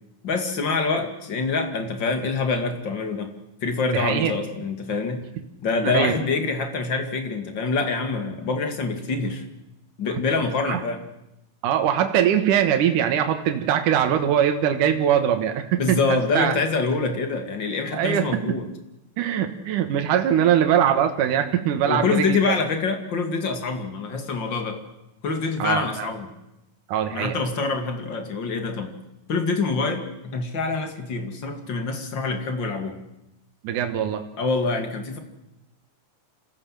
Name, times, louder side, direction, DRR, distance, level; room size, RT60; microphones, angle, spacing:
voice 1, 0.2-3.3 3.6-5.3 5.6-9.5 10.0-11.0 15.8-18.7 21.9-24.8 25.2-26.3 27.1-29.0 29.3-33.0 34.4-35.2, left 4 dB, 40° left, 6 dB, 2.6 m, -25 dB
voice 2, 3.9-4.3 5.8-6.2 10.6-10.8 11.6-16.6 17.9-18.4 19.2-22.5 25.6-26.1 26.9-27.4 33.6-34.2, right 9 dB, 75° right, 6 dB, 2.8 m, -22 dB
27.0 x 16.0 x 7.6 m, 0.93 s
omnidirectional pair, 3.7 m